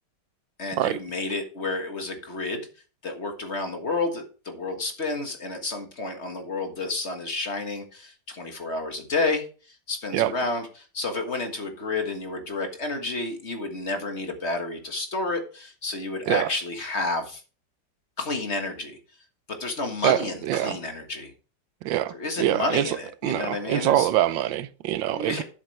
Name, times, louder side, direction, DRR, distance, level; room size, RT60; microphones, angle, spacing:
voice 1, 0.6-2.7 3.0-17.4 18.2-19.0 19.5-21.3 22.1-24.1 25.1-25.4, left 2 dB, 40° left, 1.8 m, -30 dB
voice 2, 20.0-20.8 21.8-23.0 23.2-25.4, right 13 dB, 90° right, 1.3 m, -24 dB
12.0 x 7.2 x 3.3 m
omnidirectional pair, 2.0 m